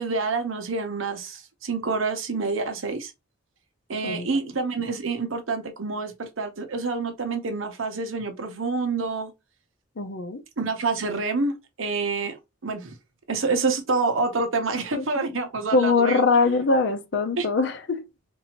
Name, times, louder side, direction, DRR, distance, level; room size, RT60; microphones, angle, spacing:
voice 1, 0.0-3.1 3.9-9.3 10.6-11.5 11.8-12.4 12.6-12.9 13.3-16.2 17.4-17.5, right 4 dB, 90° right, 0.9 m, -27 dB
voice 2, 10.0-10.4 14.9-15.3 15.7-18.0, left 4 dB, 65° left, 0.6 m, -22 dB
4.0 x 2.7 x 3.0 m
head